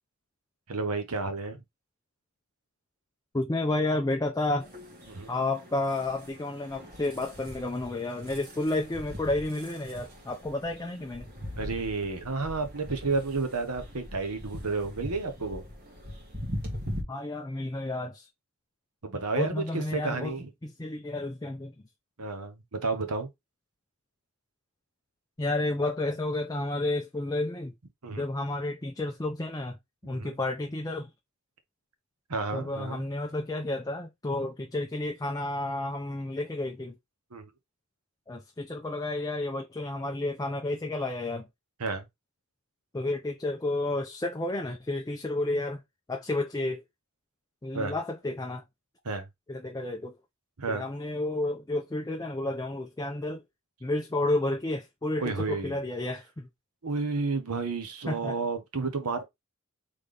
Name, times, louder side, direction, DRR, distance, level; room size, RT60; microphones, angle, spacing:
voice 1, 0.7-1.6 5.1-5.3 11.6-15.6 19.0-20.5 22.2-23.3 28.0-28.2 30.1-30.3 32.3-33.0 37.3-37.5 41.8-42.1 47.7-47.9 49.0-49.3 50.6-50.8 55.2-55.8 56.8-59.3, right 3 dB, 90° right, 1.1 m, -31 dB
voice 2, 3.3-4.7 5.3-11.3 17.1-18.3 19.3-21.8 25.4-27.7 28.2-31.1 32.5-37.0 38.3-41.5 42.9-45.8 46.1-46.8 47.6-48.6 49.5-50.1 50.7-53.4 53.8-56.5 58.1-58.4, left 2 dB, 15° left, 0.5 m, -31 dB
sound 1, 4.6-17.0, equal, 40° right, 1.6 m, -41 dB
4.0 x 3.4 x 3.3 m
head